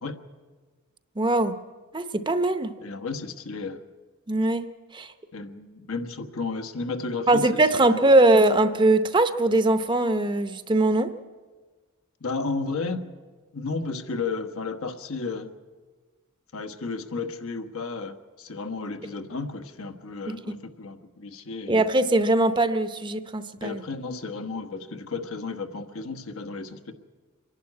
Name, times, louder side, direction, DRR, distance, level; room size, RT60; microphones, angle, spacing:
voice 1, 1.2-1.6 1.9-2.8 4.3-4.7 4.9-5.1 7.3-11.1 20.3-20.4 21.7-23.8, right 2 dB, 20° right, 10 dB, 0.7 m, -21 dB
voice 2, 2.8-3.8 5.3-8.0 12.2-13.1 13.5-15.5 16.5-21.8 23.6-26.9, left 4 dB, 80° left, 8 dB, 1.3 m, -33 dB
25.0 x 11.5 x 9.7 m, 1.4 s
head